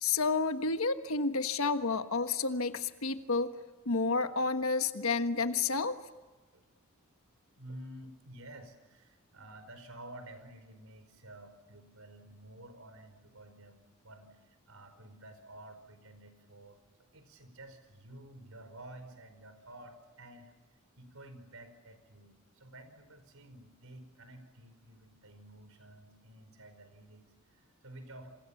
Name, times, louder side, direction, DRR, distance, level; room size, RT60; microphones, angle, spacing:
voice 1, 0.0-3.5 3.8-6.0, left 4 dB, 80° left, 9 dB, 1.4 m, -30 dB
voice 2, 7.6-16.8 17.1-20.5 21.0-28.3, right 1 dB, 80° right, 9 dB, 5.0 m, -51 dB
28.5 x 28.0 x 7.2 m, 1.2 s
head